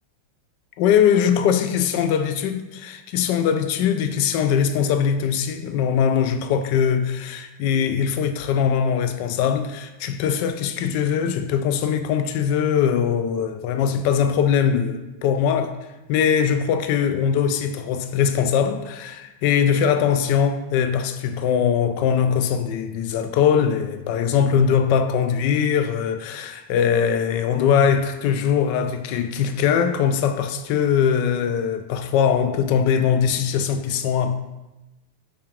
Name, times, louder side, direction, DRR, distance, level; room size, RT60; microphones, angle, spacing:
voice 1, 0.8-15.7 16.1-34.4, left 7 dB, 45° left, 0.4 m, -21 dB
5.7 x 3.6 x 2.4 m
figure-of-eight pair, 90°, 0 cm